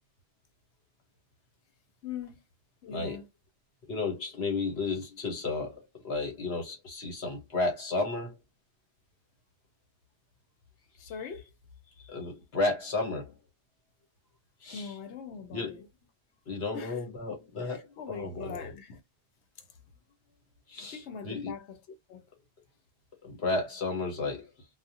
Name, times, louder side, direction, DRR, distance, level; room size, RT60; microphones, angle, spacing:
voice 1, 2.0-2.4 2.8-3.3 11.0-11.5 14.7-15.9 16.7-17.1 17.6-19.0 19.6-19.7 20.9-21.8 22.1-22.2, left 6 dB, 85° left, 1.0 m, -42 dB
voice 2, 2.9-3.2 3.9-8.4 12.0-13.3 14.6-14.9 15.5-15.8 16.5-18.7 20.7-21.5 23.2-24.8, left 3 dB, 65° left, 1.2 m, -33 dB
2.3 x 2.1 x 2.7 m
omnidirectional pair, 1.1 m